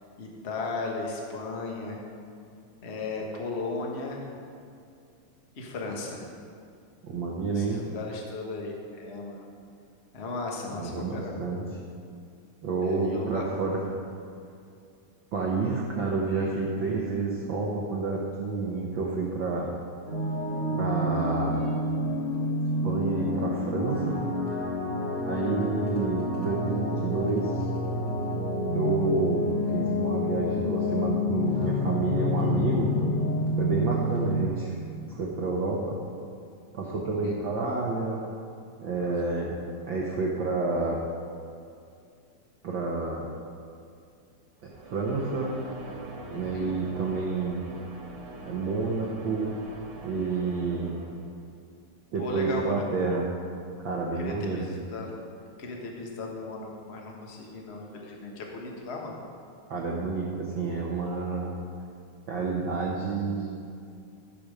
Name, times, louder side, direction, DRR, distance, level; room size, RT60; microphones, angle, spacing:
voice 1, 0.2-2.0 2.8-4.2 5.5-6.3 7.5-9.4 10.1-11.4 12.8-13.4 37.2-37.3 46.3-46.8 52.2-52.8 54.2-55.1 55.6-59.2, left 3 dB, 70° left, 0 dB, 0.6 m, -36 dB
voice 2, 7.0-7.8 10.7-11.6 12.6-13.8 15.3-19.7 20.8-21.6 22.8-24.2 25.3-27.7 28.7-32.9 33.6-36.0 36.7-38.3 38.8-39.6 39.9-41.0 42.6-43.3 44.9-45.5 46.3-47.6 48.5-49.6 50.0-51.0 52.1-53.3 53.8-54.7 59.7-61.6 62.3-63.5, right 4 dB, 85° right, -3 dB, 1.0 m, -29 dB
sound 1, 20.1-34.5, left 1 dB, 50° left, 3.5 m, -28 dB
sound 2, 44.6-51.5, right 1 dB, 55° right, 1.9 m, -43 dB
14.5 x 5.2 x 6.5 m, 2.4 s
omnidirectional pair, 3.6 m